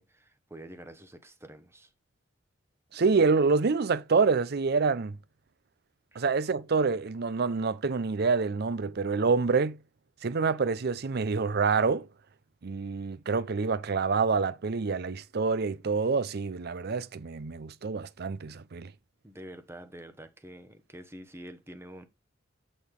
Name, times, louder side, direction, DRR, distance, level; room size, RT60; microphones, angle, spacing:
voice 1, 0.0-1.9 6.1-6.2 19.2-22.1, right 1 dB, 15° right, 1.0 m, -47 dB
voice 2, 2.9-5.2 6.2-9.8 10.2-12.1 12.6-18.9, right 4 dB, 55° right, 0.6 m, -27 dB
8.3 x 5.0 x 3.7 m
head